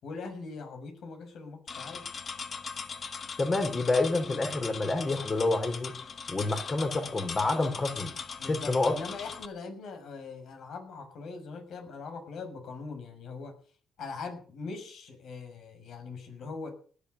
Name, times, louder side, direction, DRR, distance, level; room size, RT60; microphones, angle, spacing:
voice 1, 0.0-2.0 8.4-13.6 14.0-16.7, left 4 dB, 70° left, 6 dB, 6.3 m, -41 dB
sound 1, 1.7-9.5, left 5 dB, 45° left, 1.7 m, -40 dB
voice 2, 3.4-5.9 6.3-8.1 8.5-8.9, left 2 dB, 30° left, 5 dB, 4.2 m, -28 dB
18.5 x 11.0 x 6.8 m, 0.43 s
cardioid pair, 90°, 0 cm